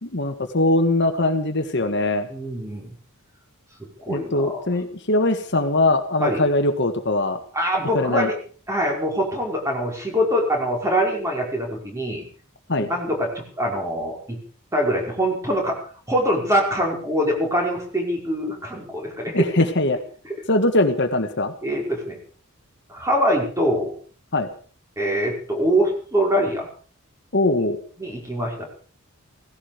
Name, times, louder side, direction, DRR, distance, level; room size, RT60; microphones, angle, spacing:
voice 1, 0.0-2.3 4.1-7.4 7.9-8.3 12.7-12.9 19.3-20.0 20.5-21.5 24.3-24.5 27.3-27.8, left 2 dB, 55° left, 6 dB, 1.7 m, -21 dB
voice 2, 2.3-2.9 3.8-4.7 6.2-6.5 7.5-8.4 8.7-12.3 12.8-14.4 14.7-15.8 16.1-19.5 20.2-20.4 21.6-22.2 22.9-23.9 25.0-26.7 28.0-28.7, equal, 15° right, 0 dB, 5.2 m, -24 dB
17.0 x 16.5 x 5.2 m, 0.43 s
head